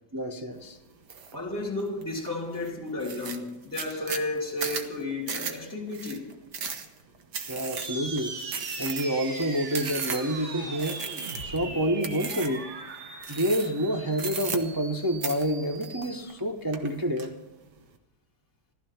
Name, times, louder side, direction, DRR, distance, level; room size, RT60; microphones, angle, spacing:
voice 1, 0.1-0.8 7.5-8.3 8.8-11.0 11.4-12.7 13.3-17.3, equal, 20° right, 0.5 m, -28 dB
sound 1, 1.1-1.3 1.8-2.3 2.6-2.7 3.0-10.4 10.8-11.6 12.0-12.6 13.2-13.8 14.1-14.9 15.2-16.4 16.7-17.3, right 6 dB, 80° right, 1.8 m, -35 dB
voice 2, 1.3-6.3, left 2 dB, 10° left, 2.7 m, -33 dB
sound 2, 7.8-16.2, right 3 dB, 45° right, 1.5 m, -39 dB
15.0 x 13.5 x 5.8 m
omnidirectional pair, 1.8 m